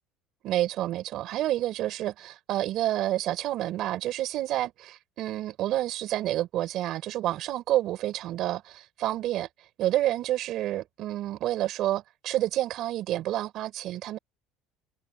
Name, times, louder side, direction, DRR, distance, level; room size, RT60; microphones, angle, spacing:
voice 1, 0.4-9.5 9.8-14.2, right 14 dB, 45° right, 6.3 m, -29 dB
cardioid pair, 170°, 0 cm